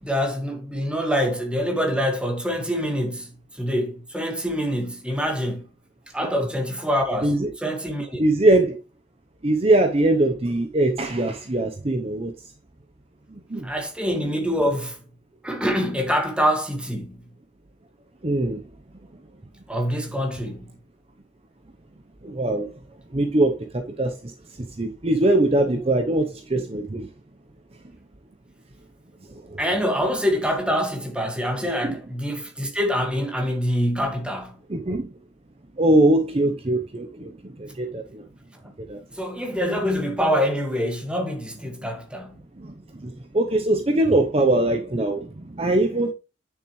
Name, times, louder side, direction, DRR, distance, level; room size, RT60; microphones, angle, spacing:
voice 1, 0.0-5.7 6.1-8.3 13.6-15.0 15.4-17.2 19.7-20.7 29.6-34.6 38.6-38.7 39.1-42.4, equal, 5° right, 1.8 m, -25 dB
voice 2, 8.2-8.8 9.4-12.3 13.3-13.7 18.2-18.6 22.2-22.7 23.1-24.3 24.6-27.1 29.3-29.6 31.8-32.0 34.7-35.1 35.8-38.2 38.9-39.0 42.6-46.1, right 1 dB, 35° right, 0.8 m, -22 dB
9.0 x 7.1 x 3.1 m
head